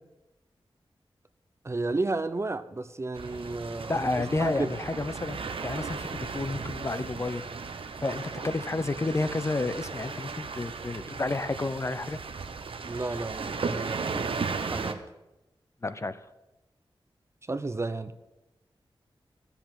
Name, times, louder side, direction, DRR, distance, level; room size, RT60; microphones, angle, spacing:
voice 1, 1.6-4.7 12.8-14.3 14.7-15.0 17.5-18.1, right 3 dB, 30° right, 0.6 m, -32 dB
sound 1, 3.1-14.9, right 4 dB, 70° right, 0.9 m, -36 dB
voice 2, 3.9-7.5 8.0-12.2 15.8-16.2, left 2 dB, 30° left, 0.6 m, -31 dB
13.5 x 7.1 x 7.5 m
wide cardioid pair, 95°, 9 cm